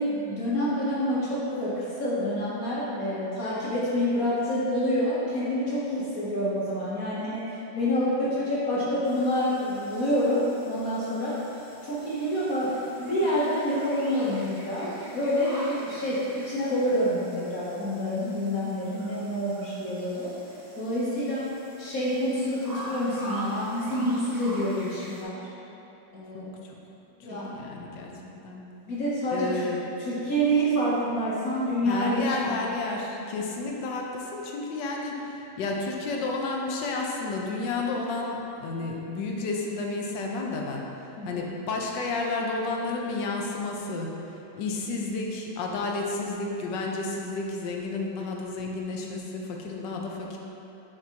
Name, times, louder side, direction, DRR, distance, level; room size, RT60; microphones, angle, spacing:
voice 1, 0.0-11.4 11.8-20.3 20.8-21.5 21.8-25.4 26.1-26.5 27.2-27.6 28.9-29.7 30.0-32.6 41.2-41.5, equal, 55° left, -8 dB, 1.3 m, -27 dB
sound 1, 9.0-25.2, equal, 25° right, 0.5 m, -44 dB
voice 2, 26.3-26.7 27.3-28.1 28.4-28.6 29.3-29.9 31.8-40.8 41.3-44.1 44.5-50.4, left 3 dB, 75° left, 0 dB, 1.4 m, -31 dB
7.6 x 5.3 x 2.8 m, 2.9 s
omnidirectional pair, 2.0 m